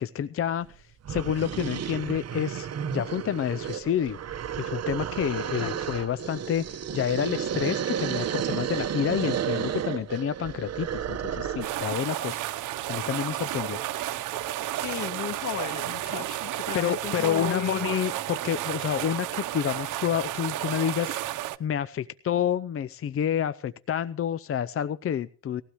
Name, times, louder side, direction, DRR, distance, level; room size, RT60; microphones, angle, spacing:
voice 1, 0.0-4.2 4.6-12.4 12.9-13.8 16.7-25.6, left 9 dB, 45° left, 15 dB, 0.7 m, -29 dB
sound 1, 0.7-0.8 1.0-11.8, right 9 dB, 55° right, 1.3 m, -32 dB
sound 2, 11.6-21.6, right 14 dB, 85° right, 1.0 m, -32 dB
voice 2, 14.8-17.9, left 9 dB, 70° left, 7 dB, 2.3 m, -35 dB
20.0 x 16.0 x 3.1 m, 0.41 s
cardioid pair, 90°, 30 cm